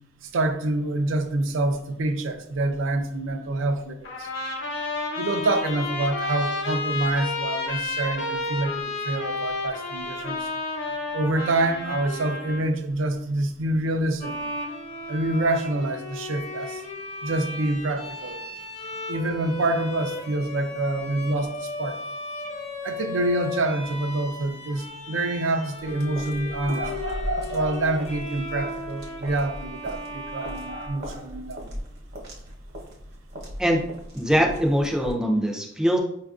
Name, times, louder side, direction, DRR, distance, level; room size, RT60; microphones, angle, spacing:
voice 1, 0.3-4.3 5.2-10.5 11.1-14.4 15.1-16.8 17.2-18.4 19.1-22.0 22.8-27.1 27.5-31.7, right 2 dB, 70° right, 0.4 m, -27 dB
Trumpet, 4.0-12.7, left 3 dB, 60° left, 0.9 m, -31 dB
Bowed string instrument, 14.2-31.6, left 2 dB, 30° left, 0.7 m, -36 dB
sound 1, 25.8-35.1, equal, 55° right, 0.8 m, -36 dB
voice 2, 34.1-36.0, equal, 5° right, 0.4 m, -22 dB
5.0 x 2.4 x 2.3 m
head